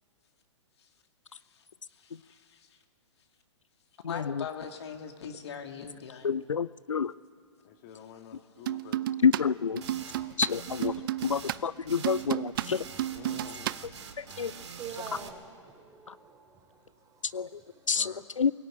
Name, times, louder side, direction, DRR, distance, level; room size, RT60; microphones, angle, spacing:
voice 1, 2.0-2.7 4.1-6.4, left 7 dB, 55° left, 5 dB, 2.3 m, -41 dB
voice 2, 4.0-4.4 6.2-7.1 9.2-9.7 10.4-12.9 14.2-14.5 16.1-16.2 17.3-17.6 17.9-18.1 18.4-18.5, left 6 dB, 80° left, 18 dB, 0.5 m, -28 dB
voice 3, 7.7-9.0 13.1-13.8 17.9-18.2, left 8 dB, 40° left, 6 dB, 2.1 m, -48 dB
sound 1, 8.7-9.4 9.8-13.8, right 13 dB, 45° right, 0.5 m, -32 dB
sound 2, 9.8-10.2 10.5-10.9 11.2-11.6 11.9-12.3 12.5-15.3, right 6 dB, 65° right, 2.6 m, -44 dB
voice 4, 14.8-17.9, right 6 dB, 20° right, 5 dB, 3.6 m, -46 dB
22.5 x 18.0 x 9.0 m, 2.4 s
figure-of-eight pair, 115°, 16 cm